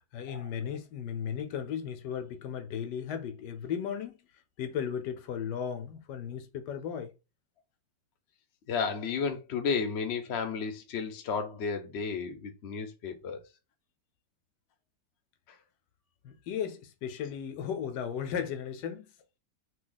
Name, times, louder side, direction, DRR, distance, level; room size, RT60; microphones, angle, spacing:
voice 1, 0.1-4.2 4.6-7.1 16.2-19.1, left 8 dB, 75° left, 1.2 m, -35 dB
voice 2, 8.7-13.4 15.5-15.6, left 5 dB, 60° left, 0.7 m, -33 dB
2.8 x 2.7 x 3.8 m
omnidirectional pair, 1.9 m